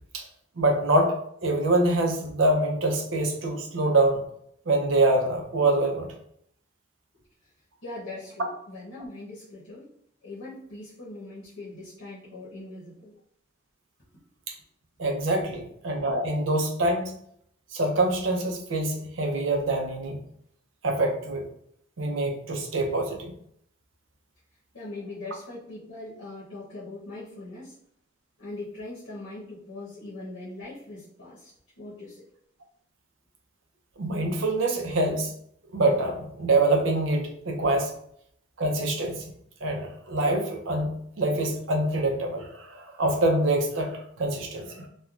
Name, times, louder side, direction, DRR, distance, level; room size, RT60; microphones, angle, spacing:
voice 1, 0.6-1.2 1.4-4.2 4.7-6.1 14.5-14.6 15.0-17.1 17.7-20.2 20.8-21.5 22.0-23.3 34.0-35.3 35.7-37.9 38.6-39.3 39.6-44.9, right 2 dB, 85° right, 4 dB, 0.5 m, -25 dB
voice 2, 7.8-9.8 10.2-13.1 24.7-27.7 28.4-31.5 31.8-32.2, left 2 dB, 85° left, -9 dB, 0.9 m, -41 dB
3.1 x 2.2 x 2.4 m, 0.71 s
head